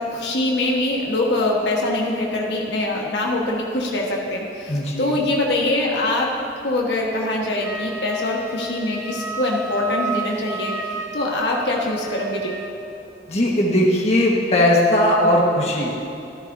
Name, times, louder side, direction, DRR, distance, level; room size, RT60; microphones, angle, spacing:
voice 1, 0.0-6.4 6.6-10.7 11.1-12.5, left 2 dB, 70° left, -2 dB, 1.5 m, -23 dB
voice 2, 4.7-5.2 13.3-16.0, left 1 dB, 40° left, -3 dB, 1.6 m, -18 dB
Wind instrument woodwind instrument, 7.6-12.8, right 3 dB, 20° right, 0.9 m, -32 dB
14.0 x 13.5 x 2.8 m, 2.8 s
head